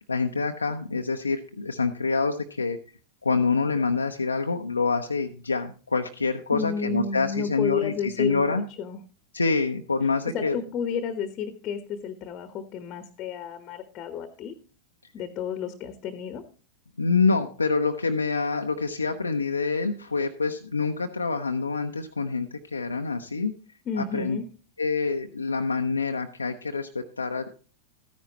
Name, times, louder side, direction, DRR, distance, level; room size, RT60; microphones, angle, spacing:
voice 1, 0.0-2.8 3.2-8.7 9.3-10.6 17.0-23.5 24.0-24.4 24.8-27.6, left 4 dB, 80° left, 4 dB, 0.7 m, -26 dB
voice 2, 6.5-9.0 10.3-14.5 15.1-16.4 23.9-24.4, left 6 dB, 35° left, 10 dB, 1.1 m, -31 dB
13.5 x 10.5 x 2.9 m, 0.37 s
figure-of-eight pair, 90°, 0 cm